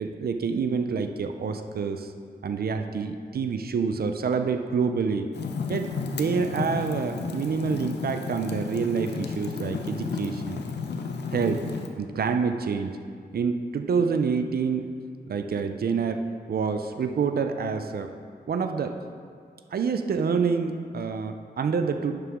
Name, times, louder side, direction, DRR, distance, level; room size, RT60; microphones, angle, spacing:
voice 1, 0.0-2.1 2.4-5.3 5.7-10.6 11.3-11.6 12.0-13.0 13.3-14.9 15.3-18.1 18.5-19.0 19.7-22.2, right 5 dB, 65° right, 7 dB, 0.5 m, -27 dB
Fire, 5.3-11.9, left 5 dB, 80° left, 0.7 m, -33 dB
11.0 x 6.6 x 3.6 m, 2.1 s
wide cardioid pair, 180°, 17 cm